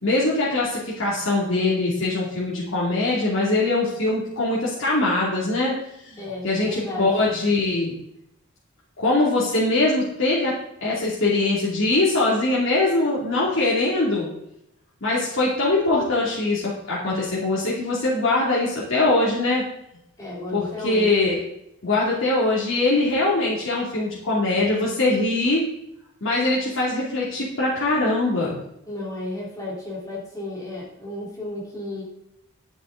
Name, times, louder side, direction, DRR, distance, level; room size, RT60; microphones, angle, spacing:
voice 1, 0.0-5.7 6.0-8.0 9.0-10.5 10.8-14.3 15.0-19.6 20.5-21.4 21.8-25.6 26.2-28.6, left 2 dB, 70° left, -7 dB, 2.7 m, -22 dB
voice 2, 6.2-7.1 20.2-21.1 28.9-32.0, left 2 dB, 15° left, -6 dB, 3.8 m, -33 dB
11.5 x 9.7 x 3.9 m, 0.82 s
head